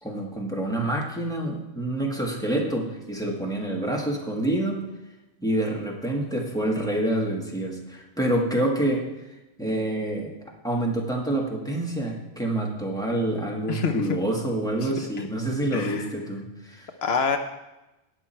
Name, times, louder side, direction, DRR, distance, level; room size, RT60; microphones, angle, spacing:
voice 1, 0.0-4.8 5.4-9.0 9.6-10.3 10.6-16.9, right 1 dB, 5° left, -1 dB, 1.8 m, -27 dB
voice 2, 13.7-14.0 15.7-16.1 17.0-17.4, left 6 dB, 75° left, 7 dB, 1.0 m, -25 dB
17.5 x 6.2 x 4.4 m, 0.98 s
omnidirectional pair, 1.1 m